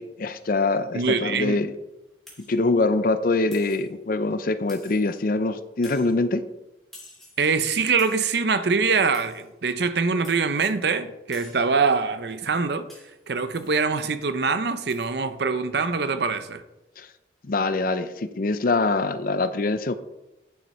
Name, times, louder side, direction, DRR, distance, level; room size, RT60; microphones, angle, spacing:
voice 1, 0.0-1.7 2.4-6.4 17.0-17.1 17.4-19.9, left 3 dB, 50° left, 0.5 m, -24 dB
voice 2, 0.9-1.6 7.4-12.9 13.3-16.6, right 4 dB, 60° right, 0.7 m, -24 dB
sound 1, 2.3-2.6 3.5-3.9 4.7-5.2 5.8-6.2 6.9-7.5 8.0-8.4 9.1-9.5 10.2-10.8 11.3-11.7 12.9-13.2 13.6-13.9 14.9-15.1, left 1 dB, ahead, 2.8 m, -49 dB
9.7 x 6.2 x 4.3 m
head